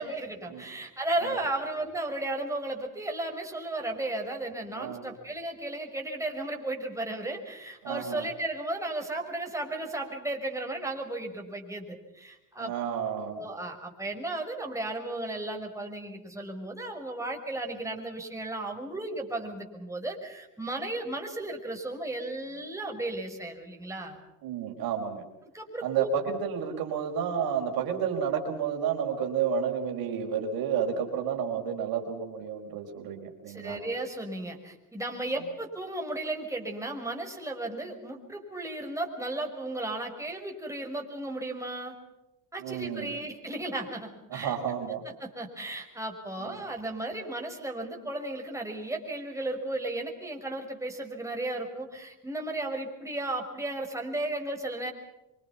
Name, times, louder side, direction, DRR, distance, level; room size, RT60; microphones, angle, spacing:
voice 1, 0.0-12.7 13.2-24.2 25.5-26.1 33.5-42.0 42.5-44.6 45.2-54.9, right 2 dB, 5° right, 2 dB, 5.9 m, -35 dB
voice 2, 4.7-5.0 7.8-8.3 12.6-13.4 24.4-25.2 25.8-33.8 42.6-43.2 44.3-45.0 46.4-46.6, right 7 dB, 55° right, 3 dB, 5.1 m, -31 dB
26.5 x 25.0 x 5.9 m, 0.93 s
hypercardioid pair, 70°, 42 cm